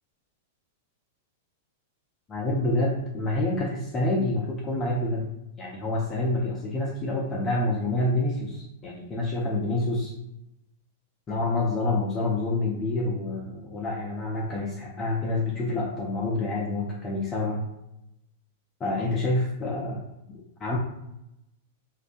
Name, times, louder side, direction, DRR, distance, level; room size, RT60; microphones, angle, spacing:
voice 1, 2.3-5.3 5.6-10.1 11.3-17.7 18.8-20.0 20.3-20.8, left 2 dB, 20° left, -3 dB, 0.4 m, -27 dB
2.5 x 2.2 x 2.4 m, 0.88 s
supercardioid pair, 140°, 0 cm